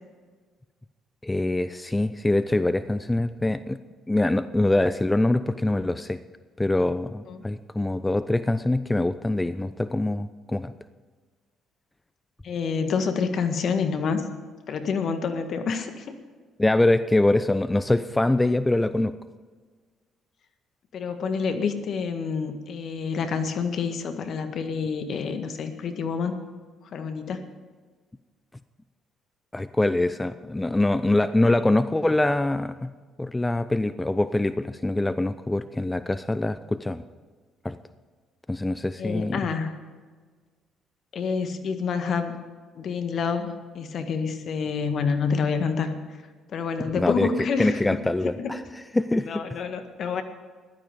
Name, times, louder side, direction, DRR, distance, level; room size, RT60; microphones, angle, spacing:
voice 1, 1.2-3.8 4.1-6.2 6.6-10.7 16.6-19.1 29.5-32.9 33.2-37.0 37.6-37.8 38.5-39.4 47.0-47.3 47.6-48.6 49.0-49.3, left 2 dB, 15° left, 13 dB, 0.6 m, -24 dB
voice 2, 12.4-14.2 14.7-16.1 20.9-26.4 26.9-27.4 39.0-39.7 41.1-42.3 42.7-46.2 46.5-48.0 48.4-48.5 49.2-50.2, left 5 dB, 60° left, 7 dB, 1.7 m, -28 dB
15.5 x 12.0 x 5.3 m, 1.5 s
hypercardioid pair, 55°, 0 cm